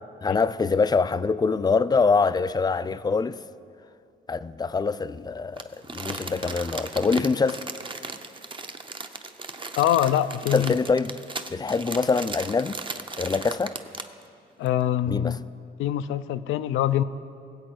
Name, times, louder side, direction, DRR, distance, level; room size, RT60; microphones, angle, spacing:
voice 1, 0.2-3.4 4.3-7.6 10.5-11.1 11.5-12.8 13.2-13.7 15.1-15.4, left 4 dB, 20° left, 0.4 m, -24 dB
Crumpling crinkling, 5.6-14.2 14.7-14.8, right 3 dB, 25° right, 0.7 m, -36 dB
voice 2, 9.8-10.7 14.6-15.4 15.8-17.0, left 11 dB, 80° left, 0.5 m, -24 dB
20.0 x 8.0 x 4.4 m
cardioid pair, 90°, 20 cm